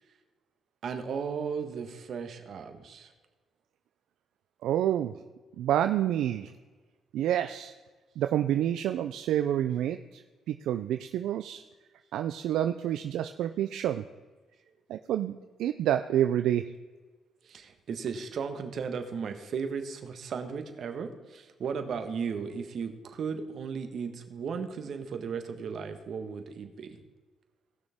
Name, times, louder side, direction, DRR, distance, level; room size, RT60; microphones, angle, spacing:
voice 1, 0.8-3.1 17.4-27.0, right 6 dB, 60° right, 7 dB, 1.4 m, -35 dB
voice 2, 4.6-5.2 5.6-6.5 7.1-7.7 8.2-10.2 10.5-11.6 12.1-14.0 14.9-16.7, right 11 dB, 85° right, 8 dB, 0.4 m, -28 dB
18.0 x 6.4 x 3.6 m, 1.3 s
cardioid pair, 90°, 0 cm